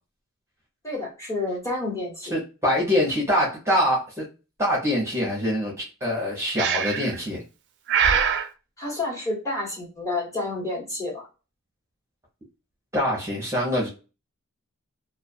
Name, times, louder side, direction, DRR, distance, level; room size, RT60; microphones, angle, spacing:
voice 1, 0.8-2.3 8.8-11.2, left 2 dB, 15° left, -3 dB, 1.1 m, -29 dB
voice 2, 2.3-4.3 4.6-7.4 12.9-13.9, equal, 15° right, -3 dB, 0.7 m, -24 dB
Breathing, 6.6-7.2 7.9-8.5, right 7 dB, 55° right, 0.3 m, -22 dB
2.3 x 2.2 x 2.5 m, 0.32 s
head